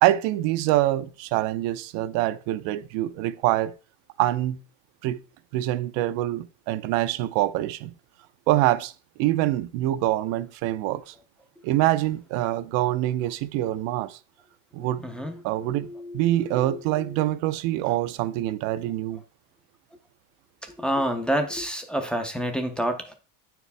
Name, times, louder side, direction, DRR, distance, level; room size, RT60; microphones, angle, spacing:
voice 1, 0.0-3.7 4.2-4.6 5.0-5.2 5.5-7.9 8.5-8.9 9.2-11.1 11.6-14.2 14.7-15.0 15.4-15.9 16.1-19.2, right 15 dB, 75° right, 0.7 m, -25 dB
voice 2, 14.8-17.1 17.9-18.0 20.6-23.1, equal, ahead, 0.4 m, -29 dB
9.1 x 4.6 x 3.4 m
cardioid pair, 155°, 48 cm